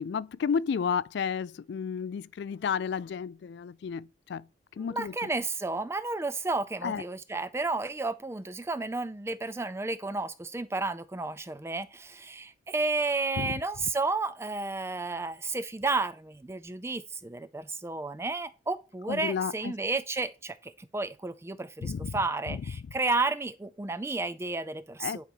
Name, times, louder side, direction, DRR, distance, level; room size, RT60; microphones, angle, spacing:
voice 1, 0.0-4.5 4.8-5.3 6.8-7.0 13.4-13.6 19.1-19.7 21.8-22.2 22.5-22.6 25.0-25.2, left 6 dB, 60° left, 0.3 m, -32 dB
voice 2, 4.8-25.2, right 3 dB, 15° right, 0.4 m, -32 dB
10.5 x 4.1 x 4.7 m
head